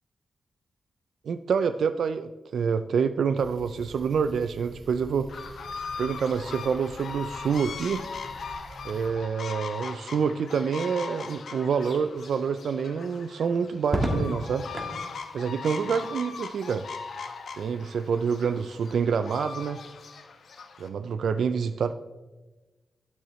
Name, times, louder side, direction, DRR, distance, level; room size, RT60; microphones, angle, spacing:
voice 1, 1.2-5.3 6.0-8.1 8.8-14.7 15.3-16.9 17.6-19.8 20.8-21.9, right 6 dB, 85° right, 10 dB, 0.3 m, -27 dB
sound 1, 3.4-9.1, right 1 dB, 55° right, 2.8 m, -47 dB
sound 2, 5.3-20.9, left 5 dB, 65° left, 0.9 m, -39 dB
Crackle, 13.8-15.0 16.6-17.1, right 1 dB, 25° right, 1.5 m, -30 dB
12.0 x 9.2 x 3.1 m, 1.2 s
wide cardioid pair, 175°, 0 cm